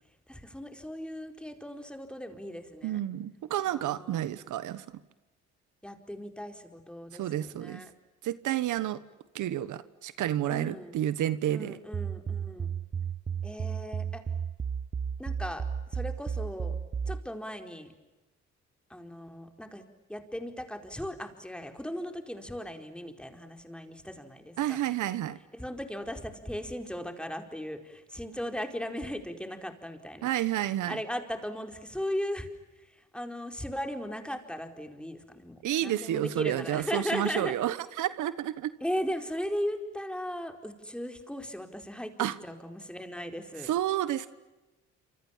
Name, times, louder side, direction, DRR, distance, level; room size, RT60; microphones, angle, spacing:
voice 1, 0.3-3.0 3.7-4.2 5.8-7.9 10.5-11.0 11.5-12.7 13.4-14.2 15.2-15.6 15.9-16.8 17.1-17.9 18.9-19.8 20.1-24.8 25.5-30.3 30.8-32.5 33.1-37.5 38.8-42.1 42.4-43.7, equal, 5° left, 5 dB, 4.5 m, -37 dB
voice 2, 2.8-4.8 7.1-7.8 8.2-9.0 9.3-11.8 24.6-25.4 30.2-31.0 35.6-38.7 42.2-42.4 43.6-44.3, right 12 dB, 80° right, 15 dB, 1.3 m, -30 dB
sound 1, 11.9-17.2, right 7 dB, 30° right, 0.9 m, -33 dB
28.0 x 27.0 x 7.4 m, 1.1 s
cardioid pair, 90°, 30 cm